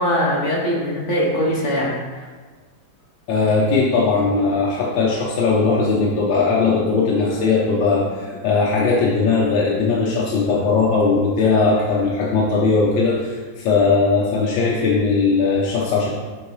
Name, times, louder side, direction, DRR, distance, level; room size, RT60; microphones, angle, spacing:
voice 1, 0.0-2.2, equal, 50° left, -3 dB, 1.1 m, -21 dB
voice 2, 3.3-16.1, left 4 dB, 80° left, -5 dB, 1.5 m, -19 dB
8.1 x 3.9 x 3.2 m, 1.4 s
omnidirectional pair, 2.0 m